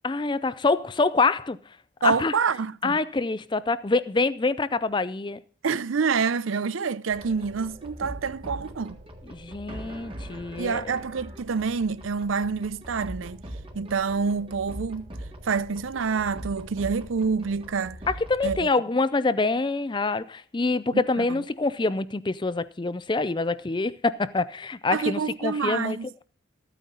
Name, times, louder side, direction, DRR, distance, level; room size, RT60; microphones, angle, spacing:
voice 1, 0.0-1.6 2.0-2.4 2.8-5.4 9.3-11.0 18.1-26.2, left 3 dB, 25° left, 0.4 m, -26 dB
voice 2, 2.0-3.0 5.6-9.0 10.6-13.4 13.7-15.1 15.4-18.0 18.4-18.7 20.9-21.2 24.9-26.1, right 5 dB, 80° right, 0.5 m, -27 dB
sound 1, 7.1-18.6, right 1 dB, 25° right, 1.6 m, -41 dB
14.0 x 9.2 x 3.9 m
head